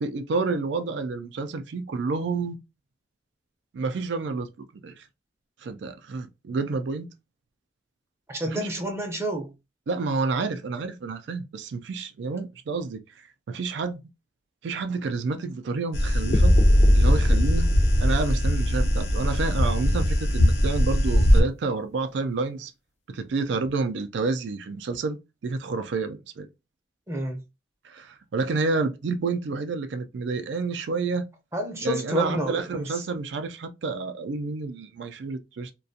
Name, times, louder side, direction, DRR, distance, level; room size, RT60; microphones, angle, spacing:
voice 1, 0.0-2.6 3.7-4.5 4.8-4.9 5.6-7.1 8.4-8.7 9.9-13.0 13.5-14.0 14.6-16.6 16.9-17.7 18.0-22.7 23.1-25.2 25.4-26.5 27.8-31.2 31.8-35.7, right 4 dB, 80° right, 0.4 m, -29 dB
voice 2, 8.3-9.5 27.1-27.4 31.5-33.0, equal, 15° right, 0.5 m, -29 dB
sound 1, 15.9-21.4, equal, 65° left, 0.7 m, -22 dB
sound 2, 16.3-20.3, left 1 dB, 40° left, 0.4 m, -21 dB
2.4 x 2.2 x 2.6 m
head